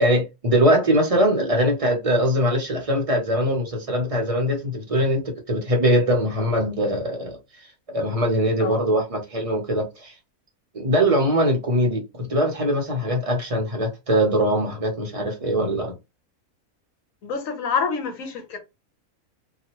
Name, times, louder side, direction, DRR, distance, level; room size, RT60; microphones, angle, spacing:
voice 1, 0.0-7.4 7.9-10.1 10.7-15.9, equal, 30° right, 0.7 m, -22 dB
voice 2, 17.2-18.6, left 5 dB, 70° left, 1.2 m, -27 dB
2.9 x 2.4 x 2.9 m
omnidirectional pair, 1.5 m